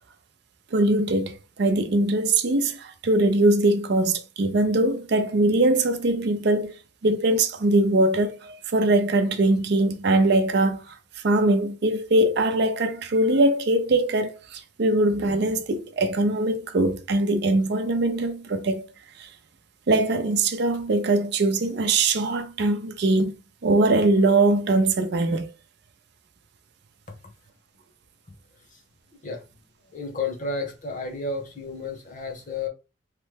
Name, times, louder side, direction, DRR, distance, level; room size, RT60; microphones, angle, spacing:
voice 1, 0.7-6.8 7.0-11.0 11.2-18.8 19.2-19.3 19.9-23.3 23.6-25.5, right 2 dB, 60° right, 0.5 m, -22 dB
voice 2, 29.9-32.7, left 3 dB, 45° left, 0.9 m, -32 dB
3.2 x 2.2 x 3.2 m
head